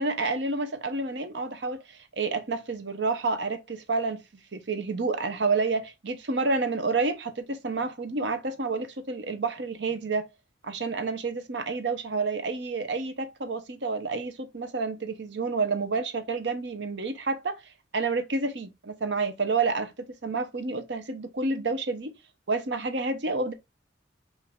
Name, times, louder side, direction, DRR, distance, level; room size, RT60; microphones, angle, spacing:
voice 1, 0.0-4.2 4.5-10.3 10.6-17.6 17.9-19.9 20.2-22.1 22.5-23.5, right 3 dB, 70° right, 0.8 m, -29 dB
5.5 x 2.6 x 3.4 m
head